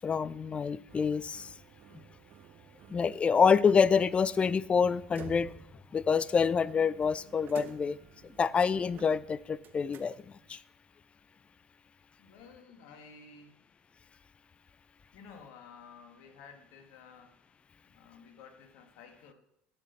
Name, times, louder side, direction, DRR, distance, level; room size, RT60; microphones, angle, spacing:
voice 1, 0.0-1.5 2.9-5.5 5.9-8.0 8.4-10.1 10.5-10.6, left 6 dB, 25° left, 20 dB, 0.4 m, -26 dB
sound 1, 0.9-10.6, right 9 dB, 45° right, 0.8 m, -52 dB
voice 2, 12.2-13.6 15.1-17.3 17.8-19.3, left 5 dB, 65° left, 6 dB, 1.8 m, -53 dB
10.5 x 6.4 x 6.8 m, 0.78 s
hypercardioid pair, 70°, 4 cm